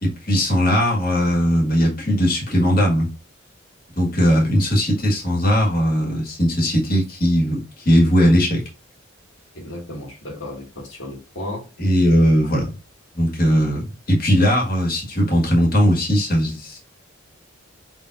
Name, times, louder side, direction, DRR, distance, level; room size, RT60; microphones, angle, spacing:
voice 1, 0.0-3.1 4.0-8.6 11.8-12.7 13.2-13.8 14.1-16.8, equal, 45° left, 1.8 m, -18 dB
voice 2, 9.6-11.7 12.4-12.6, left 1 dB, 70° left, 1.9 m, -34 dB
4.7 x 3.8 x 2.5 m
head